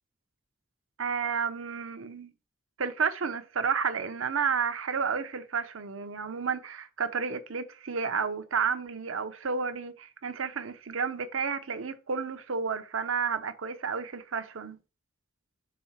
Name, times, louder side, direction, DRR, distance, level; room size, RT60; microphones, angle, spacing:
voice 1, 1.0-2.3 2.8-14.8, right 5 dB, 85° right, 0.8 m, -31 dB
6.0 x 4.0 x 5.8 m
head